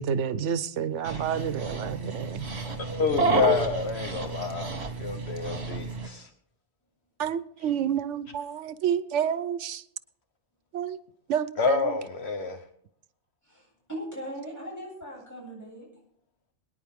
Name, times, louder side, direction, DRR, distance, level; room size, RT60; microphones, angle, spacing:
voice 1, 0.0-2.5 7.2-9.8 10.7-11.0 11.3-12.0, right 8 dB, 85° right, 1.0 m, -29 dB
Dog, 1.1-6.1, right 3 dB, 65° right, 1.9 m, -30 dB
voice 2, 2.7-4.7 5.0-6.3 11.6-12.6, left 5 dB, 65° left, 1.2 m, -28 dB
voice 3, 13.9-15.9, equal, 15° left, 8.0 m, -38 dB
23.0 x 10.0 x 3.6 m
omnidirectional pair, 1.2 m